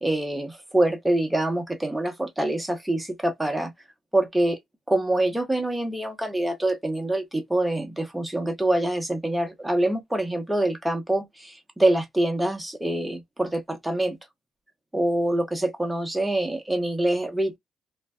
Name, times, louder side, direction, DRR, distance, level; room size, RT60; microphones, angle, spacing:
voice 1, 0.0-3.7 4.1-4.6 4.9-14.2 14.9-17.6, right 1 dB, 5° right, 0.7 m, -25 dB
2.5 x 2.2 x 2.2 m
cardioid pair, 90°, 0 cm